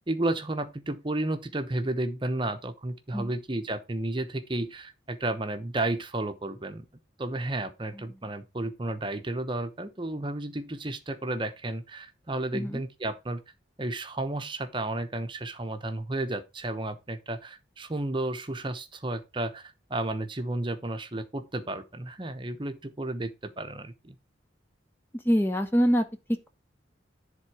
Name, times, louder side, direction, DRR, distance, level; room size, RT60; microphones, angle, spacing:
voice 1, 0.0-6.9 7.2-13.4 13.8-24.2, right 2 dB, 25° right, 0.8 m, -32 dB
voice 2, 25.1-26.5, equal, 10° left, 0.6 m, -26 dB
10.5 x 3.8 x 4.7 m
head